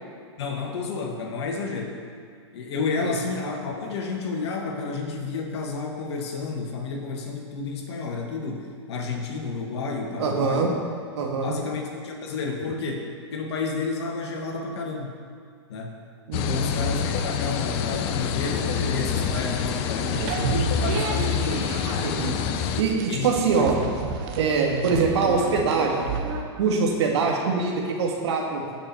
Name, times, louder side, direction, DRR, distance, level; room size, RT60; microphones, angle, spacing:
voice 1, 0.4-2.0 2.5-10.8 11.4-15.2 15.7-15.9 16.3-21.8 23.1-23.7, left 4 dB, 65° left, 1 dB, 2.0 m, -31 dB
voice 2, 10.2-10.7 11.1-11.5 16.3-16.7 22.0-22.3 22.8-23.8 24.3-26.1 26.6-28.6, right 4 dB, 70° right, 0 dB, 2.1 m, -23 dB
sound 1, 16.3-22.8, left 7 dB, 40° left, 0.8 m, -27 dB
sound 2, 19.0-26.4, right 5 dB, 50° right, 1.4 m, -31 dB
17.0 x 6.1 x 4.5 m, 2.1 s
hypercardioid pair, 115°, 15 cm